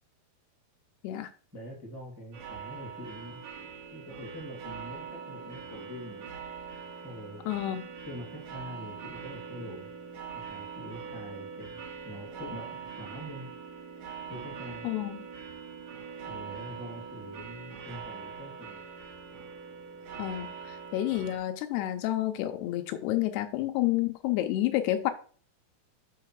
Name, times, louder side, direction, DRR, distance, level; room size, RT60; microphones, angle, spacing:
voice 1, 1.5-3.4 3.9-6.2 7.0-7.4 8.0-9.9 10.3-13.5 14.3-14.9 16.3-18.8, equal, 10° right, 1.1 m, -44 dB
sound 1, 2.3-21.4, right 6 dB, 55° right, 2.3 m, -43 dB
voice 2, 7.5-7.9 14.8-15.2 20.2-25.1, left 14 dB, 80° left, 2.5 m, -29 dB
6.5 x 5.5 x 4.6 m
omnidirectional pair, 4.9 m